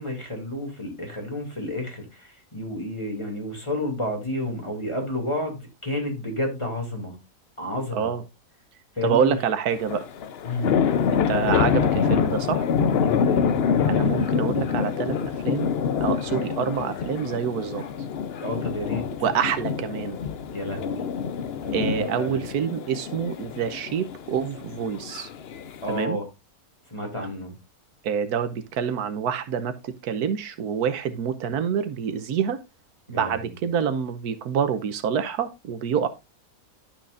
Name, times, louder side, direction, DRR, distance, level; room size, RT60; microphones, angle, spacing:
voice 1, 0.0-7.2 7.6-8.1 9.0-9.3 10.4-10.7 13.0-13.5 18.4-19.0 20.5-21.1 21.6-22.4 25.8-26.2 26.9-27.5 33.1-33.5, left 1 dB, 20° left, 2.6 m, -30 dB
voice 2, 7.9-8.2 9.0-10.1 11.1-12.7 13.8-15.2 15.4-15.7 16.0-17.8 19.2-20.2 21.7-25.3 25.9-26.2 28.0-32.6 33.1-36.1, right 7 dB, 90° right, 1.3 m, -27 dB
sound 1, 9.7-26.0, left 7 dB, 55° left, 0.7 m, -26 dB
11.5 x 6.1 x 2.5 m
omnidirectional pair, 1.6 m